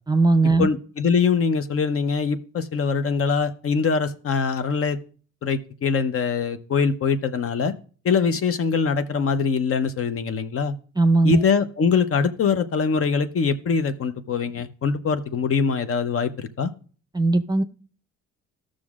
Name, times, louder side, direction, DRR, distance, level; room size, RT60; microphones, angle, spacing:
voice 1, 0.1-0.7 11.0-11.4 17.1-17.6, right 3 dB, 15° right, 10 dB, 0.5 m, -18 dB
voice 2, 0.6-5.0 5.4-7.7 8.0-10.7 11.2-16.7, left 5 dB, 50° left, 10 dB, 0.8 m, -23 dB
14.0 x 6.3 x 2.4 m, 0.41 s
cardioid pair, 90°, 30 cm